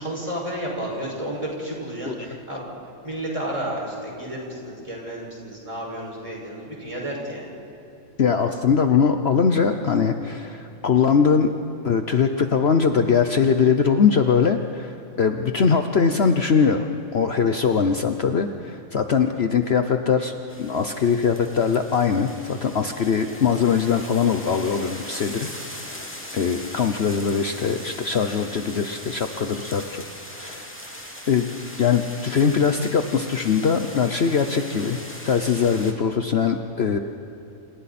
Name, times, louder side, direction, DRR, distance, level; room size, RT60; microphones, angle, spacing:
voice 1, 0.0-2.7 3.0-7.5, right 1 dB, 25° right, -2 dB, 6.0 m, -31 dB
voice 2, 8.2-11.5 11.8-16.9 17.1-25.5 25.8-30.7 31.3-31.5 31.8-37.0, left 6 dB, 55° left, 6 dB, 1.1 m, -21 dB
sound 1, 20.5-35.9, equal, 10° left, 2.3 m, -40 dB
28.5 x 28.5 x 4.3 m, 3.0 s
omnidirectional pair, 1.4 m